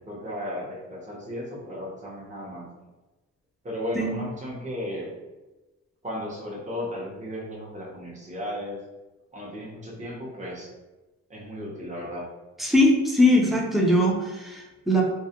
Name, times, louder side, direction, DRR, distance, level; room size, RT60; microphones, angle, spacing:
voice 1, 0.0-2.7 3.6-5.1 6.0-8.8 9.3-10.7 11.3-12.2, left 1 dB, 25° right, -4 dB, 0.8 m, -35 dB
voice 2, 12.6-15.0, left 1 dB, ahead, -1 dB, 0.5 m, -21 dB
2.3 x 2.1 x 2.8 m, 1.1 s
cardioid pair, 95°, 30 cm